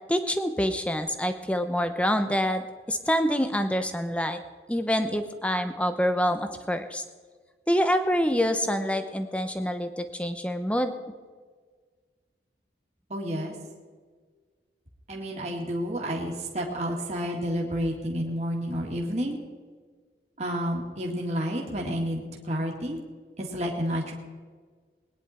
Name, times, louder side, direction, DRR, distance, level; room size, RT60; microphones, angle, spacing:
voice 1, 0.1-4.4 4.7-7.0 7.7-10.9, equal, 5° left, 8 dB, 0.8 m, -26 dB
voice 2, 13.1-13.5 15.1-19.4 20.4-23.0 23.4-24.1, equal, 40° right, -2 dB, 2.1 m, -30 dB
21.0 x 10.0 x 4.3 m, 1.5 s
head